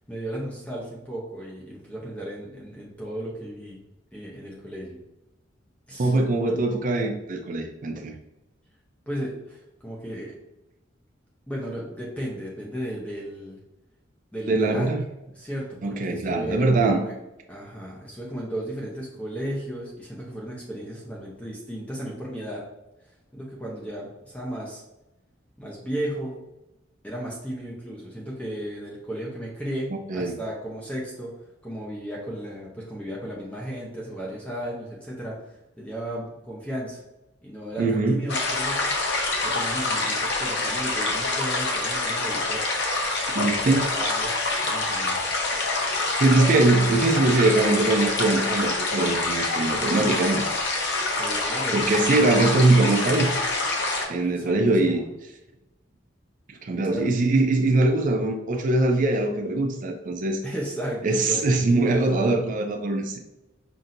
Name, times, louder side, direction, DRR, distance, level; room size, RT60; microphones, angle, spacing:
voice 1, 0.1-3.8 4.1-5.0 5.9-6.6 9.1-10.3 11.5-13.6 14.3-14.9 15.3-17.1 17.5-22.6 23.0-24.8 25.6-26.3 27.0-31.3 31.6-37.0 37.4-39.0 39.4-42.7 43.6-44.3 44.6-45.3 51.1-51.9 54.2-55.0 56.9-57.1 60.4-61.5, right 1 dB, 5° left, -4 dB, 0.7 m, -35 dB
voice 2, 6.0-8.1 14.5-15.0 15.8-17.0 30.1-30.4 37.8-38.2 43.3-43.8 46.2-50.4 51.7-53.3 54.1-55.0 56.5-60.4 61.0-63.2, right 2 dB, 45° right, 3 dB, 0.5 m, -22 dB
sound 1, 38.3-54.1, left 2 dB, 65° left, 0.9 m, -26 dB
5.7 x 2.7 x 2.5 m, 0.94 s
head